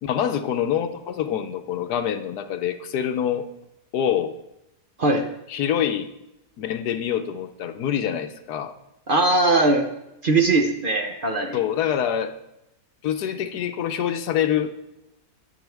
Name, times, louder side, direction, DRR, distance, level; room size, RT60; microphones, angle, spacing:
voice 1, 0.0-3.5 3.9-4.3 5.5-6.1 6.6-8.7 11.5-12.4 13.0-14.7, left 9 dB, 90° left, 8 dB, 1.4 m, -25 dB
voice 2, 9.1-9.9 10.2-11.6, right 2 dB, 40° right, 4 dB, 0.9 m, -20 dB
20.5 x 7.0 x 3.4 m, 0.88 s
omnidirectional pair, 1.7 m